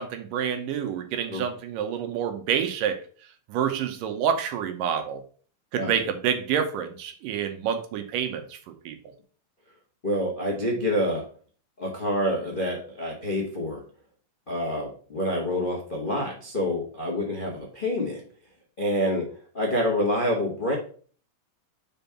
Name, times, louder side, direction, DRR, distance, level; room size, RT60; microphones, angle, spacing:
voice 1, 0.0-3.0 3.5-5.2 5.7-8.6 8.9-9.0, right 8 dB, 75° right, 7 dB, 2.4 m, -28 dB
voice 2, 10.0-11.3 11.8-13.8 14.5-18.2 18.8-19.3 19.5-20.7, equal, 90° left, -2 dB, 0.4 m, -27 dB
5.4 x 5.0 x 5.7 m, 0.43 s
omnidirectional pair, 4.0 m